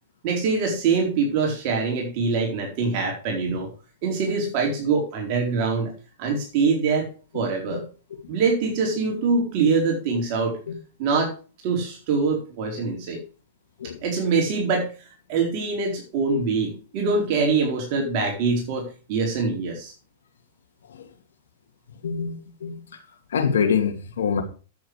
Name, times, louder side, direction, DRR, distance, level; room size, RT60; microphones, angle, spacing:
voice 1, 0.2-3.7 4.0-5.9 6.2-7.9 8.3-10.6 11.0-11.3 11.6-13.2 13.8-19.9, right 4 dB, 50° right, 4.2 m, -24 dB
voice 2, 22.0-22.8 23.3-24.4, left 6 dB, 85° left, 2.4 m, -24 dB
10.5 x 8.2 x 4.8 m
hypercardioid pair, 135°, 0 cm